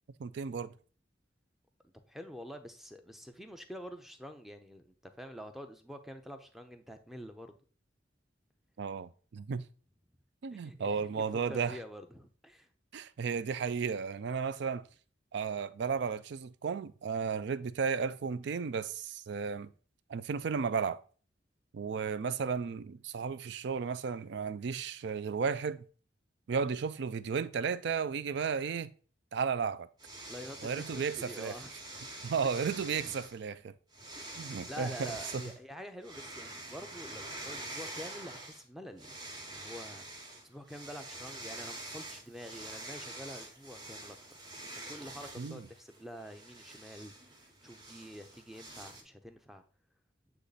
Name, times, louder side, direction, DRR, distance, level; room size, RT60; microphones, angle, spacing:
voice 1, 0.2-0.7 8.8-9.6 10.4-11.8 12.9-14.9 15.3-19.7 20.1-21.0 21.7-25.8 26.5-28.9 29.3-29.9 30.6-31.5 32.2-33.7 34.4-35.4 45.4-45.6, right 6 dB, 60° right, 0.4 m, -34 dB
voice 2, 2.1-7.6 10.5-12.7 30.3-30.7 30.9-31.7 32.4-32.7 33.0-33.2 34.1-44.2 44.6-49.6, equal, ahead, 0.5 m, -47 dB
sound 1, 30.0-33.4 33.9-35.6 36.0-38.6 39.0-49.0, right 2 dB, 20° right, 1.0 m, -46 dB
8.0 x 3.1 x 4.0 m
head